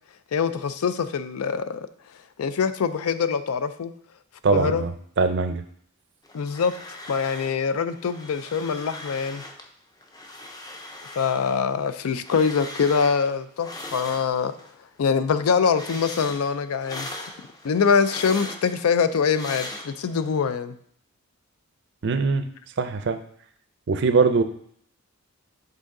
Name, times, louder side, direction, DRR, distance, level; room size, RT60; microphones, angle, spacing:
voice 1, 0.3-1.9 2.4-3.9 4.5-4.9 6.3-6.7 7.1-9.4 11.2-14.5 15.0-17.1 17.6-20.7, left 6 dB, 75° left, 13 dB, 0.4 m, -24 dB
voice 2, 4.4-4.9 5.2-5.6 22.0-22.5 22.8-23.2 23.9-24.4, right 4 dB, 55° right, 10 dB, 0.5 m, -21 dB
sound 1, 6.2-7.6 7.9-9.7 10.0-14.7 15.1-20.3, left 2 dB, 15° left, 0.5 m, -40 dB
7.6 x 3.8 x 3.7 m, 0.62 s
head